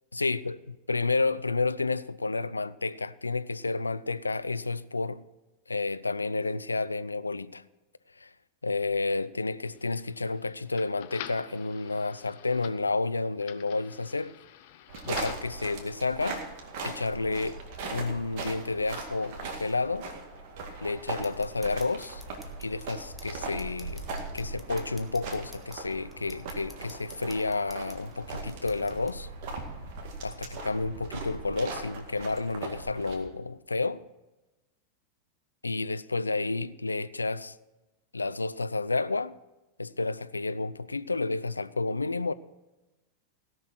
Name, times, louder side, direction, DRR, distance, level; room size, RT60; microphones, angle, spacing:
voice 1, 0.1-5.2 5.7-7.6 8.2-8.3 8.6-14.4 15.1-16.4 16.8-17.6 17.9-20.1 20.8-22.2 22.6-24.0 24.3-29.3 30.2-34.0 35.6-37.6 38.1-39.3 39.8-42.3, left 3 dB, 80° left, 0.3 m, -30 dB
sound 1, 9.7-15.5, left 11 dB, 50° left, 0.8 m, -46 dB
sound 2, 14.9-33.2, right 3 dB, 45° right, 2.1 m, -39 dB
sound 3, 21.1-29.1, left 2 dB, ahead, 1.3 m, -53 dB
16.5 x 5.9 x 6.2 m
figure-of-eight pair, 90°, 0 cm